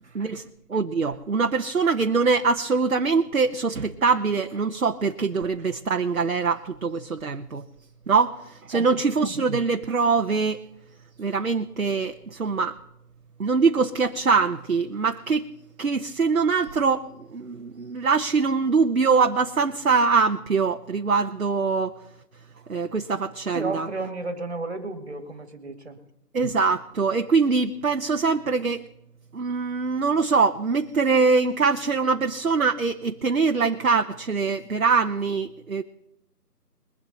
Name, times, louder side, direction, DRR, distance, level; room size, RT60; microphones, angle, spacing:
voice 1, 0.1-7.6 8.1-10.6 11.2-12.8 13.4-15.5 15.8-22.0 22.7-23.9 26.3-28.9 29.3-35.8, right 4 dB, 60° right, 0.9 m, -23 dB
voice 2, 8.7-9.0 23.5-26.0, right 3 dB, 40° right, 2.0 m, -33 dB
22.0 x 7.9 x 4.1 m
figure-of-eight pair, 170°, 48 cm